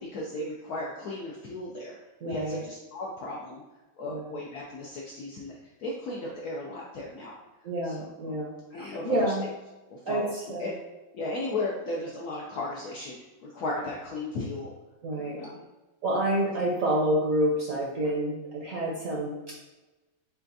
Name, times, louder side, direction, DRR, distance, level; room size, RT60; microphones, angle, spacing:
voice 1, 0.0-2.0 2.2-3.6 4.0-5.5 5.8-7.4 7.8-8.4 8.7-9.3 9.9-10.7 11.1-14.7 15.2-15.6, left 2 dB, 70° left, -3 dB, 0.9 m, -35 dB
voice 2, 2.2-2.6 4.1-4.3 7.6-9.5 10.1-10.7 15.0-15.4 16.0-19.6, right 1 dB, 60° right, -4 dB, 0.9 m, -28 dB
6.7 x 2.4 x 2.6 m, 1.1 s
omnidirectional pair, 2.1 m